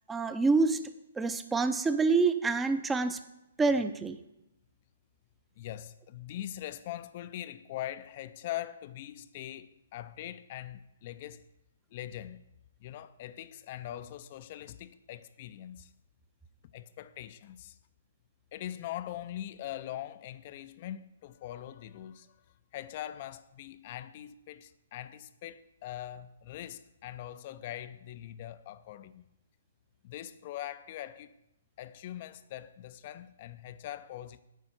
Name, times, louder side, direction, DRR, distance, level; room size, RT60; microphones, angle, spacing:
voice 1, 0.1-0.9 1.2-3.2 3.6-4.2, right 4 dB, 10° right, 0.6 m, -27 dB
voice 2, 5.6-11.4 11.9-12.4 12.8-15.9 16.7-17.8 18.5-22.4 22.7-29.2 30.0-31.3 31.8-34.4, left 12 dB, 40° left, 0.4 m, -42 dB
9.1 x 5.6 x 7.8 m
figure-of-eight pair, 125°, 0 cm